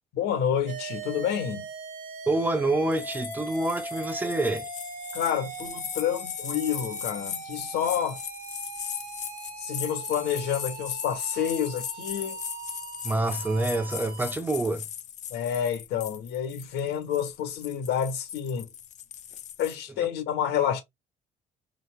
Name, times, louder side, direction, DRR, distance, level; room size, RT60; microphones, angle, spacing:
voice 1, 0.1-1.6 5.1-8.2 9.6-12.4 15.3-18.7 19.6-20.8, left 9 dB, 90° left, 1.6 m, -29 dB
sound 1, 0.7-14.3, right 5 dB, 55° right, 1.0 m, -40 dB
voice 2, 2.3-4.7 13.0-14.9, right 2 dB, 10° right, 0.8 m, -27 dB
sound 2, 2.9-19.8, left 9 dB, 45° left, 0.5 m, -38 dB
4.0 x 2.7 x 3.5 m
cardioid pair, 110°, 17 cm